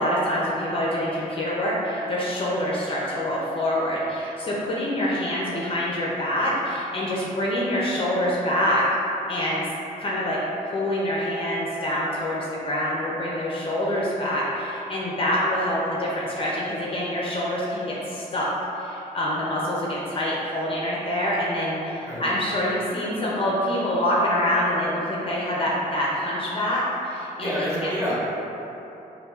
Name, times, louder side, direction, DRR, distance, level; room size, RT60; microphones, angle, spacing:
voice 1, 0.0-8.8 9.3-9.6 10.0-10.4 10.7-18.5 18.8-27.9, left 1 dB, 35° left, -5 dB, 0.6 m, -26 dB
voice 2, 27.4-28.1, equal, 20° right, -9 dB, 1.2 m, -27 dB
5.3 x 2.2 x 2.4 m, 3.0 s
cardioid pair, 105°, 15 cm